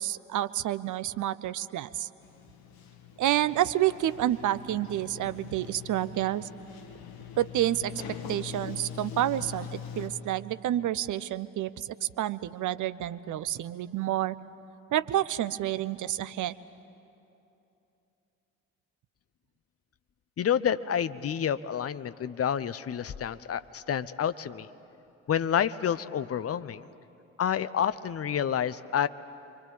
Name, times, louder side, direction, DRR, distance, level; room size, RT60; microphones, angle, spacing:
voice 1, 0.0-2.1 3.2-6.5 7.4-7.9 8.3-14.4 14.9-16.5, right 13 dB, 50° right, 15 dB, 0.9 m, -29 dB
Sliding door, 2.2-10.1, left 7 dB, 65° left, 2.3 m, -43 dB
voice 2, 20.4-24.7 25.3-26.9 27.4-29.1, left 9 dB, 35° left, 14 dB, 0.9 m, -29 dB
29.0 x 23.5 x 8.7 m, 2.9 s
figure-of-eight pair, 45°, 40 cm